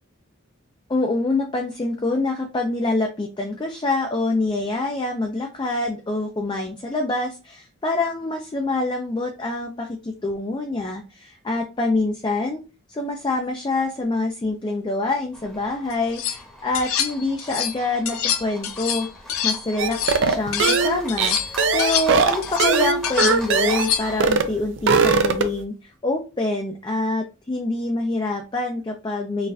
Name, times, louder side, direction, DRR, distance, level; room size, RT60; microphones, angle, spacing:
voice 1, 0.9-12.6 12.9-19.1 19.4-29.5, left 2 dB, 20° left, 2 dB, 0.4 m, -26 dB
Livestock farm animals working animals, 15.3-24.2, left 1 dB, 5° left, 0.9 m, -39 dB
sound 1, 15.9-16.4 16.7-17.8 18.1-20.8 21.1-24.2, left 8 dB, 85° left, 0.5 m, -26 dB
sound 2, 19.8-23.9 24.2-24.5 24.8-25.6, right 4 dB, 60° right, 0.4 m, -20 dB
3.9 x 2.5 x 2.6 m, 0.30 s
head